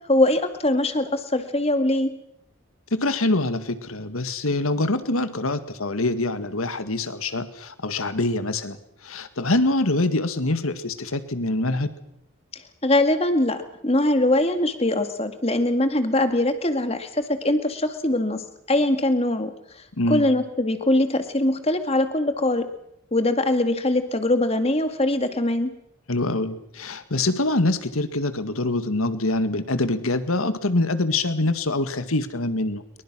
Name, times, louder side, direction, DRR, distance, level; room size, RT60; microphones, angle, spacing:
voice 1, 0.1-2.1 12.5-19.5 20.1-22.7 23.1-25.7, left 1 dB, 30° left, 9 dB, 2.2 m, -22 dB
voice 2, 2.9-11.9 20.0-20.2 26.1-32.8, left 2 dB, 90° left, 11 dB, 1.9 m, -25 dB
28.0 x 24.0 x 6.2 m, 0.79 s
head